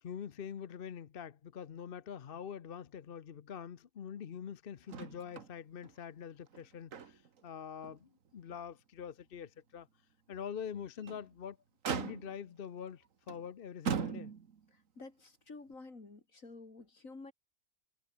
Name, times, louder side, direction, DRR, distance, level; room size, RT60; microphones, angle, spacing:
voice 1, 0.0-9.9 10.3-11.6 11.9-14.3, left 8 dB, 45° left, 0.8 m, -45 dB
Motor vehicle (road), 4.9-5.5 5.8-5.9 6.5-7.4 7.8-8.0 8.5-8.6 10.8-11.3 11.8-12.5 13.3-13.4 13.9-14.7 15.7-15.8, right 7 dB, 60° right, 1.8 m, -39 dB
voice 2, 14.7-17.3, left 3 dB, 60° left, 4.1 m, -51 dB
omnidirectional pair, 1.5 m